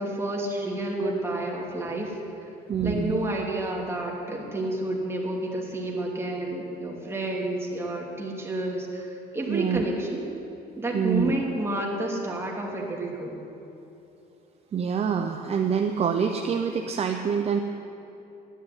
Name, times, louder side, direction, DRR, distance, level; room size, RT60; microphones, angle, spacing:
voice 1, 0.0-2.2 2.8-10.2 10.8-13.4, right 1 dB, 15° right, -1 dB, 2.8 m, -30 dB
voice 2, 2.7-3.3 9.5-9.8 10.9-11.4 14.7-17.6, right 7 dB, 40° right, 5 dB, 0.8 m, -26 dB
11.0 x 10.0 x 9.8 m, 2.9 s
cardioid pair, 110°, 17 cm